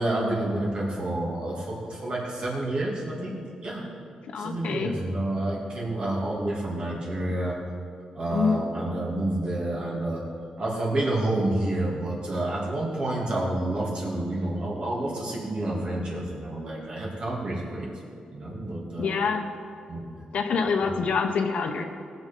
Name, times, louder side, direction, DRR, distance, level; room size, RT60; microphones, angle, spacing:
voice 1, 0.0-3.4 3.6-3.9 4.4-7.6 8.1-10.2 10.6-17.9 18.3-19.1 19.9-20.1 20.5-20.9, right 1 dB, 45° right, -4 dB, 2.8 m, -29 dB
voice 2, 4.3-5.0 8.3-8.7 19.0-19.5 20.3-21.8, left 5 dB, 65° left, 5 dB, 1.1 m, -26 dB
19.5 x 7.0 x 5.4 m, 2.5 s
wide cardioid pair, 150°, 2 cm